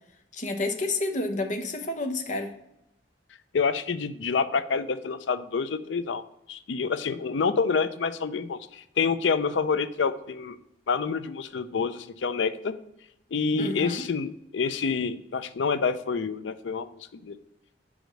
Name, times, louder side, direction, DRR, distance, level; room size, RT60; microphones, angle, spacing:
voice 1, 0.3-2.5 13.6-14.0, left 2 dB, 45° left, 6 dB, 0.8 m, -30 dB
voice 2, 3.5-6.2 6.5-10.6 10.9-12.7 13.3-17.4, left 5 dB, 85° left, 13 dB, 0.5 m, -27 dB
5.1 x 4.9 x 6.3 m, 0.81 s
head